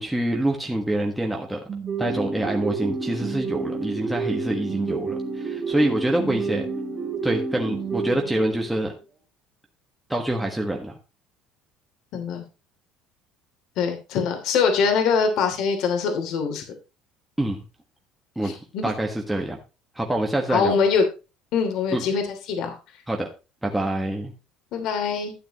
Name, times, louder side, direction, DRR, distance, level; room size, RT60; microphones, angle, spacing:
voice 1, 0.0-1.6 2.0-6.6 7.2-8.9 10.1-10.9 17.4-17.6 18.3-19.6 19.9-20.7 21.9-22.0 23.1-23.3 23.6-24.3, right 1 dB, 5° right, 0 dB, 1.4 m, -26 dB
sound 1, 1.7-8.9, right 4 dB, 25° right, 2.6 m, -30 dB
voice 2, 12.1-12.4 13.8-16.6 18.4-18.9 20.5-21.0 21.5-22.8 24.7-25.3, left 5 dB, 60° left, 5 dB, 2.8 m, -23 dB
12.5 x 8.9 x 3.0 m, 0.29 s
cardioid pair, 150°, 0 cm